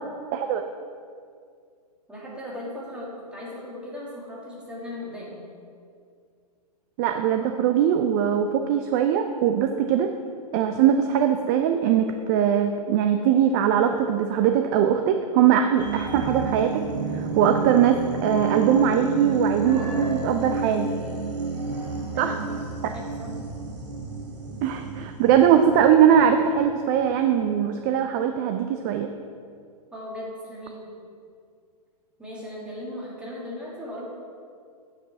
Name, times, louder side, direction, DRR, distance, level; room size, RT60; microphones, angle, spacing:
voice 1, 2.1-5.5 22.1-22.6 22.9-23.3 29.9-30.9 32.2-34.1, left 1 dB, 5° right, -5 dB, 1.9 m, -37 dB
voice 2, 7.0-10.1 10.5-16.8 17.1-20.9 22.2-22.4 24.6-29.1, right 9 dB, 30° right, 6 dB, 0.4 m, -21 dB
sound 1, 15.8-26.8 27.2-27.3, right 3 dB, 90° right, 2.3 m, -30 dB
8.8 x 4.8 x 5.8 m, 2.2 s
hypercardioid pair, 140°, 21 cm